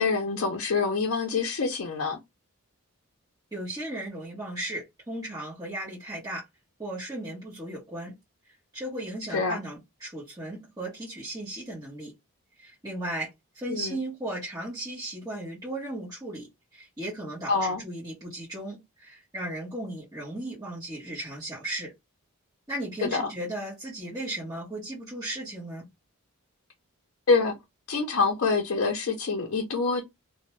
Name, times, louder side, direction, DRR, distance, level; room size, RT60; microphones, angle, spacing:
voice 1, 0.0-2.2 9.3-9.6 13.7-14.0 17.5-17.8 23.0-23.3 27.3-27.6 27.9-30.0, left 4 dB, 60° left, 0.5 m, -26 dB
voice 2, 3.5-6.4 6.8-8.1 8.7-12.1 12.6-16.5 16.7-21.9 22.7-25.9, right 1 dB, 15° right, 1.0 m, -36 dB
2.5 x 2.1 x 3.1 m
head